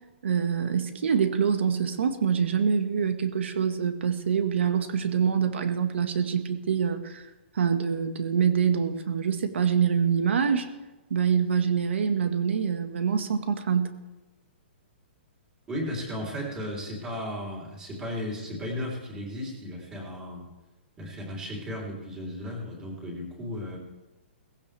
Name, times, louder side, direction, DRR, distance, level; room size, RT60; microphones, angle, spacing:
voice 1, 0.2-7.3 7.6-10.7 11.1-13.9, right 7 dB, 75° right, 8 dB, 1.8 m, -25 dB
voice 2, 15.7-20.5 21.0-23.8, left 1 dB, 10° right, -3 dB, 3.7 m, -35 dB
18.5 x 16.0 x 3.5 m, 1.1 s
hypercardioid pair, 165°, 6 cm